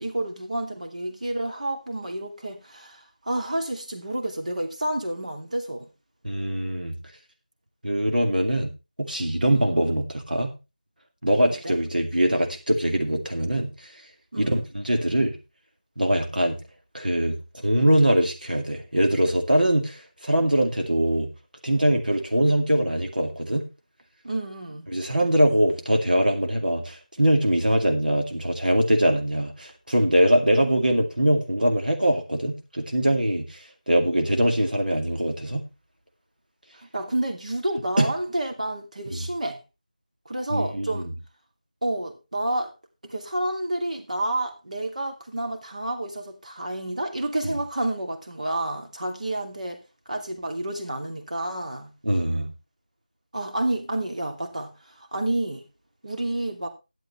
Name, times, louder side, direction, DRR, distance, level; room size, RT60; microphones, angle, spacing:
voice 1, 0.0-5.9 9.5-9.8 11.5-11.8 14.3-14.6 24.2-24.9 36.7-39.6 40.3-41.1 41.8-42.7 43.0-49.8 50.1-51.9 53.3-55.6 56.0-56.7, right 1 dB, 60° right, 2.6 m, -30 dB
voice 2, 6.2-6.9 7.8-8.7 9.0-10.5 11.2-13.9 14.4-15.4 16.0-16.6 16.9-21.3 21.6-23.7 24.9-35.6 38.0-38.1 39.1-39.3 40.5-41.1 47.5-47.6 52.0-52.5, right 1 dB, 85° right, 2.2 m, -22 dB
13.0 x 11.0 x 3.1 m
figure-of-eight pair, 175°, 5 cm